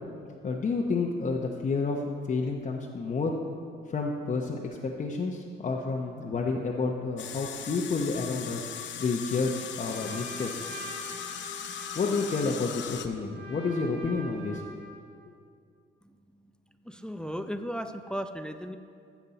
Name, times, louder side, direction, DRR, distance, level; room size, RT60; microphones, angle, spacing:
voice 1, 0.4-2.0 2.3-3.3 3.9-10.5 11.9-14.6, left 4 dB, 40° left, -1 dB, 0.9 m, -30 dB
sound 1, 7.2-13.1, left 8 dB, 70° left, 0.7 m, -39 dB
Trumpet, 9.3-15.0, right 2 dB, 60° right, 2.3 m, -45 dB
voice 2, 16.8-18.8, equal, 5° left, 8 dB, 0.5 m, -35 dB
13.0 x 7.4 x 4.1 m, 2.3 s
supercardioid pair, 75°, 20 cm